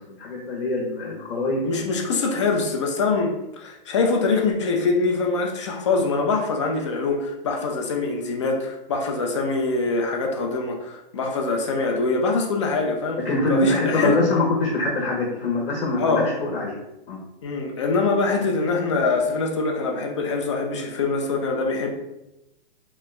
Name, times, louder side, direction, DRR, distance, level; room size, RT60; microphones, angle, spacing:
voice 1, 0.2-1.9 13.2-16.7 17.1-17.2, left 2 dB, 75° left, -3 dB, 0.9 m, -24 dB
voice 2, 1.6-13.2 13.5-14.2 16.0-16.3 17.4-21.9, left 3 dB, 35° left, 1 dB, 0.4 m, -24 dB
2.9 x 2.2 x 3.1 m, 0.93 s
hypercardioid pair, 165°, 29 cm